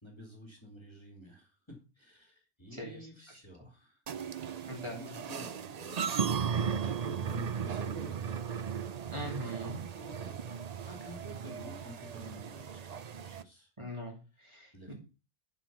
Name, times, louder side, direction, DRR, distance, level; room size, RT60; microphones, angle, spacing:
voice 1, 0.0-4.0 4.6-6.5 6.8-8.4 9.4-13.7 14.7-14.9, equal, 25° left, 1 dB, 2.4 m, -51 dB
voice 2, 2.7-3.1 4.7-5.0 9.1-9.8 13.8-14.9, equal, 30° right, -1 dB, 2.9 m, -41 dB
sound 1, 4.1-13.4, right 7 dB, 45° right, 0.6 m, -36 dB
11.0 x 4.5 x 6.0 m, 0.32 s
omnidirectional pair, 1.1 m